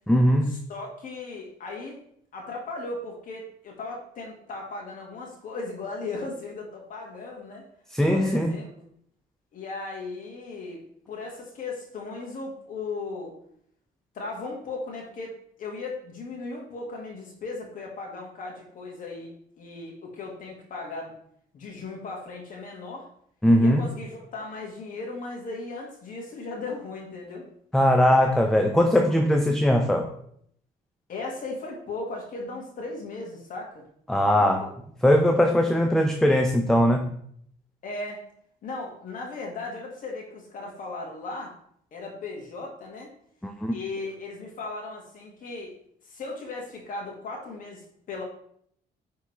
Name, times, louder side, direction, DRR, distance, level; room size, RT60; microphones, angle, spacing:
voice 1, 0.1-0.5 7.9-8.5 23.4-23.9 27.7-30.1 34.1-34.7 35.0-37.1 43.4-43.7, equal, 5° left, 4 dB, 0.5 m, -20 dB
voice 2, 0.7-2.0 2.3-7.7 8.1-8.6 9.5-10.8 11.1-13.3 14.1-15.3 15.6-21.1 21.5-23.1 23.6-27.4 31.1-33.8 34.2-34.5 37.8-38.2 38.6-41.5 41.9-43.1 43.7-45.8 46.0-48.2, left 3 dB, 55° left, -1 dB, 1.7 m, -37 dB
9.6 x 3.6 x 3.2 m, 0.67 s
cardioid pair, 110°, 17 cm